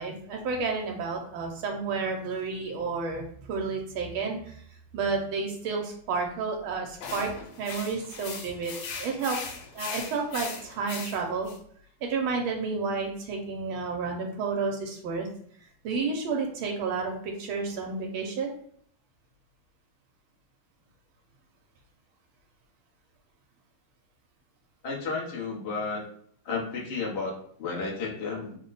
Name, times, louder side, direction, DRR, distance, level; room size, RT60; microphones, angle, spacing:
voice 1, 0.0-7.3 7.6-9.4 9.7-11.5 12.0-15.3 15.6-18.5, right 4 dB, 80° right, 2 dB, 1.4 m, -31 dB
sound 1, 7.0-11.6, left 5 dB, 85° left, 1.6 m, -39 dB
voice 2, 24.8-26.0 26.4-28.6, left 4 dB, 50° left, -2 dB, 0.7 m, -32 dB
3.5 x 2.1 x 3.9 m, 0.62 s
omnidirectional pair, 2.3 m